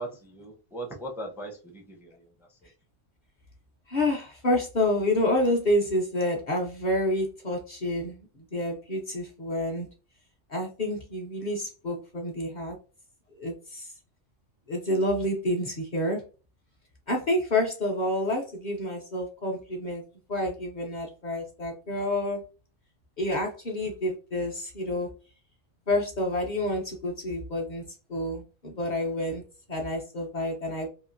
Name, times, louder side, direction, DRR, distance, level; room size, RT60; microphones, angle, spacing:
voice 1, 0.0-2.7, right 1 dB, 5° right, 1 dB, 0.3 m, -39 dB
voice 2, 3.9-9.9 10.5-12.8 13.3-13.9 14.7-16.3 17.1-20.0 20.3-22.4 23.2-25.1 25.9-27.8 28.1-29.4 29.7-30.9, left 1 dB, 50° left, 0 dB, 0.6 m, -28 dB
2.8 x 2.5 x 2.5 m, 0.34 s
omnidirectional pair, 1.3 m